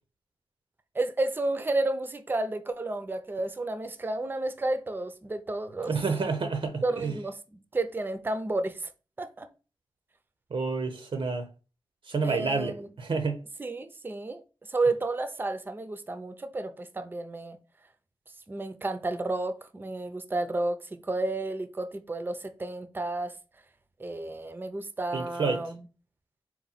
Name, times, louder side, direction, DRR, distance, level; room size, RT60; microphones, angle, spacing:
voice 1, 0.9-5.9 6.8-7.3 7.7-8.9 9.2-9.5 12.2-12.9 13.6-14.4 14.7-17.6 18.5-23.3 24.0-25.8, right 2 dB, 20° right, 0.4 m, -31 dB
voice 2, 5.9-7.1 10.5-11.5 12.1-13.4 25.1-25.7, right 4 dB, 75° right, 0.6 m, -29 dB
4.2 x 2.1 x 4.0 m
wide cardioid pair, 85°, 9 cm